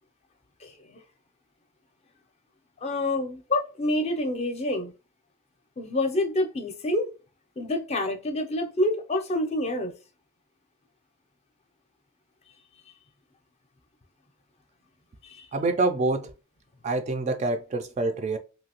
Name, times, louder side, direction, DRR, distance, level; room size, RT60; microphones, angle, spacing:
voice 1, 0.6-1.0 2.8-4.9 5.8-7.1 7.6-9.9 15.2-15.5, left 1 dB, 30° left, 0.5 m, -27 dB
voice 2, 15.5-16.3 16.8-18.4, right 3 dB, 35° right, 0.3 m, -26 dB
2.8 x 2.6 x 2.8 m
head